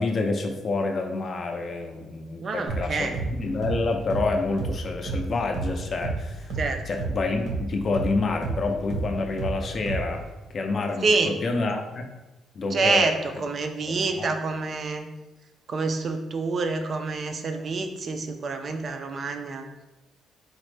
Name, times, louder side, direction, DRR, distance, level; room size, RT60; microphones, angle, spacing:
voice 1, 0.0-6.5 6.9-10.3 10.5-12.1 12.5-13.1 13.9-14.3, left 3 dB, 40° left, 4 dB, 0.4 m, -28 dB
voice 2, 2.4-3.2 6.6-6.8 11.0-11.3 12.7-15.1 15.7-19.7, right 3 dB, 40° right, 6 dB, 0.3 m, -27 dB
sound 1, 2.7-10.3, right 3 dB, 65° right, 0.7 m, -32 dB
4.0 x 2.0 x 3.2 m, 1.1 s
cardioid pair, 140°, 0 cm